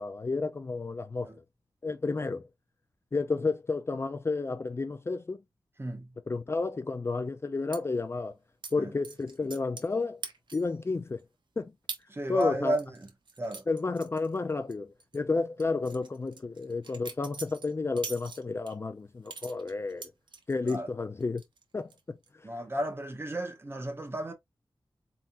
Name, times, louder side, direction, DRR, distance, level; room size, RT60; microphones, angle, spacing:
voice 1, 0.0-1.3 1.8-2.5 3.1-5.4 6.3-8.3 8.7-10.2 10.5-11.2 11.6-11.7 12.3-12.8 13.7-20.0 20.5-21.4 21.7-21.9, left 3 dB, 30° left, 0.4 m, -31 dB
voice 2, 5.8-6.1 8.8-8.9 12.1-13.1 13.4-13.6 20.6-20.9 22.4-24.3, right 1 dB, 30° right, 1.2 m, -33 dB
sound 1, 7.7-7.8 8.6-8.7 9.0-9.9 10.2-10.8 11.2-11.3 11.9-12.0 12.4-14.7 15.0-15.2 15.6-18.7 19.3-20.8 21.2-21.6 21.9-22.3, right 4 dB, 75° right, 0.9 m, -43 dB
4.2 x 3.5 x 2.4 m
wide cardioid pair, 115°, 8 cm